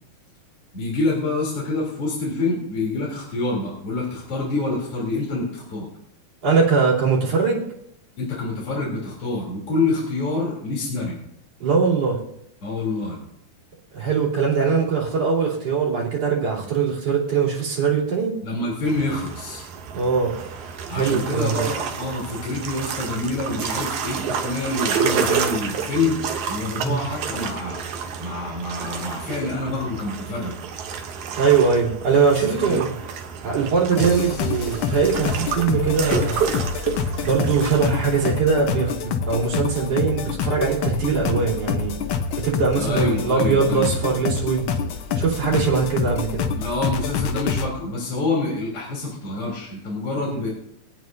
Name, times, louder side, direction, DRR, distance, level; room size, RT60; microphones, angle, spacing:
voice 1, 0.7-5.9 8.2-11.2 12.6-13.2 18.4-19.6 20.9-27.8 28.2-30.6 32.3-32.8 42.7-44.2 45.5-45.7 46.6-50.5, left 2 dB, 45° left, -5 dB, 4.2 m, -27 dB
voice 2, 6.4-7.6 11.6-12.2 13.9-18.4 19.9-20.4 20.9-21.7 26.8-27.0 31.4-32.9 33.4-36.5 37.2-42.0 42.4-44.7 45.2-46.5 50.2-50.4, right 5 dB, 50° right, -6 dB, 4.5 m, -21 dB
sound 1, 18.8-38.4, right 6 dB, 75° right, 2.4 m, -30 dB
sound 2, 34.0-47.7, left 6 dB, 85° left, 1.1 m, -26 dB
24.5 x 9.2 x 2.7 m, 0.76 s
omnidirectional pair, 3.6 m